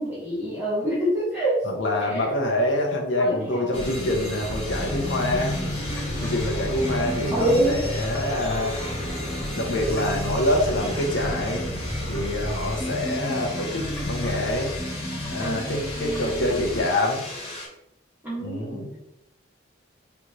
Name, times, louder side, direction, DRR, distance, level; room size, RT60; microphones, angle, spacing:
voice 1, 0.0-1.7 2.0-2.3 3.2-3.8 7.3-7.8 15.4-16.9 18.2-18.9, right 1 dB, 10° right, -10 dB, 1.6 m, -27 dB
voice 2, 1.7-5.5 6.2-8.7 9.6-11.6 12.1-14.7 15.3-17.2 18.4-18.9, left 1 dB, 75° left, 1 dB, 0.9 m, -26 dB
sound 1, 3.7-17.7, left 1 dB, 30° left, 1.0 m, -34 dB
sound 2, 4.5-16.9, left 1 dB, 10° left, 0.5 m, -32 dB
3.9 x 3.4 x 3.0 m, 0.80 s
head